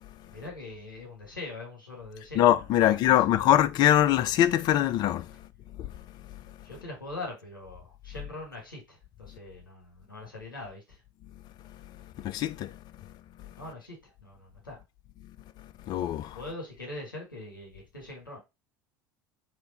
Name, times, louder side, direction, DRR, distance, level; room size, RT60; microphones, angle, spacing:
voice 1, 0.3-3.5 6.6-11.0 13.6-14.8 16.3-18.4, left 2 dB, 85° left, 1.5 m, -42 dB
voice 2, 2.4-5.3 5.8-5.9 12.2-12.8 15.9-16.4, left 12 dB, 40° left, 0.4 m, -23 dB
4.2 x 2.6 x 3.9 m
figure-of-eight pair, 70°, 11 cm